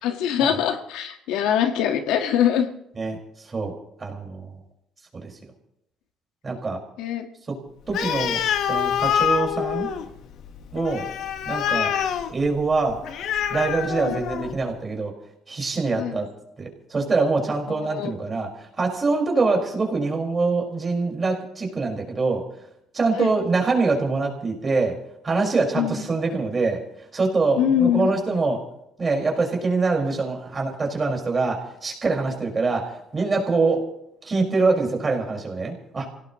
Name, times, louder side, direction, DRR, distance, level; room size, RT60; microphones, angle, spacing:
voice 1, 0.0-2.7 7.0-7.3 14.0-14.2 16.0-16.2 17.7-18.2 23.2-23.3 25.7-26.0 27.6-28.1, left 9 dB, 90° left, 6 dB, 1.4 m, -23 dB
voice 2, 4.0-4.5 5.1-5.3 6.4-6.8 7.5-7.6 7.9-8.4 8.7-9.9 10.7-11.1 11.5-11.9 12.3-13.0 13.5-15.1 15.5-16.3 16.6-18.5 18.8-22.4 22.9-25.0 25.2-26.8 27.1-28.6 29.0-33.8 34.2-36.1, right 3 dB, 30° right, 1 dB, 4.9 m, -24 dB
Animal, 7.9-14.6, left 9 dB, 70° left, 1.2 m, -26 dB
27.0 x 17.5 x 3.0 m, 0.79 s
cardioid pair, 105°, 0 cm